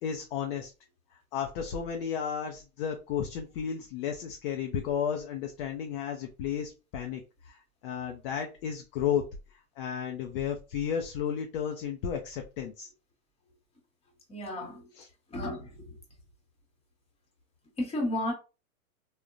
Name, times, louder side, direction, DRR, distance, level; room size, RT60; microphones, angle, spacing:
voice 1, 0.0-0.7 1.1-9.2 9.5-12.9 15.0-15.1, left 8 dB, 40° left, 0.5 m, -33 dB
voice 2, 14.3-14.9 15.3-16.0 17.8-18.3, left 1 dB, 15° left, 1.0 m, -33 dB
3.5 x 2.2 x 2.5 m
hypercardioid pair, 105°, 43 cm